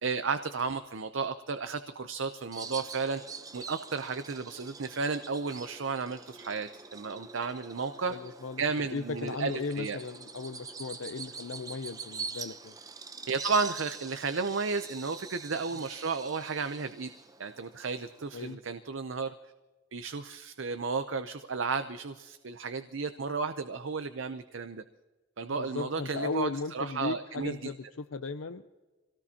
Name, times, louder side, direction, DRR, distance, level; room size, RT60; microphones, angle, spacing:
voice 1, 0.0-3.2 3.5-8.1 8.6-10.0 13.3-17.1 17.4-19.3 19.9-24.8 25.4-27.7, right 4 dB, 65° right, 9 dB, 0.7 m, -33 dB
Bird vocalization bird call bird song, 2.5-18.5, right 5 dB, 20° right, 0.7 m, -45 dB
voice 2, 8.1-8.6 8.9-12.8 18.3-18.6 25.6-28.6, left 4 dB, 75° left, 10 dB, 0.6 m, -36 dB
26.0 x 18.0 x 2.9 m, 1.3 s
head